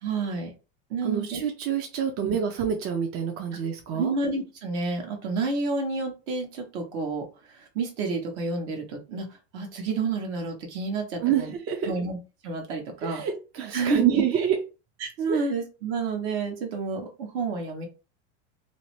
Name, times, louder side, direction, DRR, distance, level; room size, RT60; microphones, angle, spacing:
voice 1, 0.0-0.5 0.9-1.4 2.2-2.3 3.9-9.3 9.5-11.5 11.8-12.2 12.4-13.2 13.7-14.2 15.0-17.9, right 4 dB, 65° right, 2 dB, 1.1 m, -29 dB
voice 2, 1.0-4.1 11.2-11.9 13.0-14.6 15.3-15.5, right 9 dB, 40° right, 4 dB, 0.6 m, -27 dB
2.7 x 2.1 x 3.1 m, 0.32 s
supercardioid pair, 115°, 35 cm